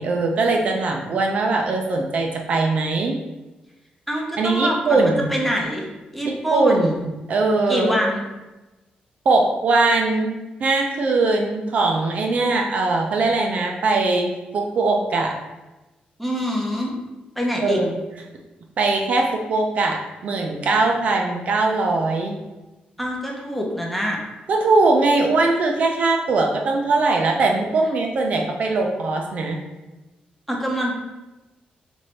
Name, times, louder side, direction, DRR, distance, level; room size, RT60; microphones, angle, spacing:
voice 1, 0.0-3.2 4.4-5.3 6.2-8.0 9.3-10.3 10.6-15.3 17.6-18.0 18.8-22.4 24.5-29.6, right 3 dB, 50° right, 2 dB, 0.4 m, -21 dB
voice 2, 4.1-5.8 6.1-7.0 7.7-8.2 12.4-12.6 16.2-16.9 17.4-17.8 23.0-24.2 30.5-30.9, equal, ahead, -2 dB, 0.5 m, -25 dB
3.1 x 2.5 x 4.2 m, 1.1 s
wide cardioid pair, 170°, 3 cm